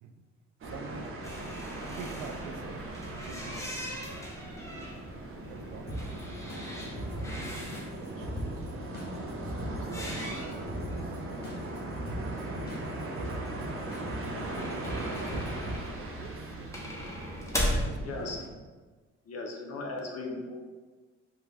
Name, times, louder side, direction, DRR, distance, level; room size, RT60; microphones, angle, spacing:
sound 1, 0.6-18.5, right 1 dB, 45° right, 0.8 m, -39 dB
voice 1, 0.6-1.2 1.5-3.8 5.4-8.7 9.4-11.2 12.3-13.7 14.7-16.9 17.8-18.4, right 5 dB, 90° right, 6 dB, 0.5 m, -48 dB
sound 2, 1.2-7.9 9.8-11.0 11.3-11.4 11.6-11.7 14.2-17.9, equal, 10° left, 0.7 m, -38 dB
sound 3, 5.9-15.8, equal, 30° left, 1.1 m, -40 dB
voice 2, 18.0-18.5 19.2-20.7, left 3 dB, 55° left, 1 dB, 0.7 m, -37 dB
3.6 x 2.3 x 3.3 m, 1.3 s
cardioid pair, 90°, 30 cm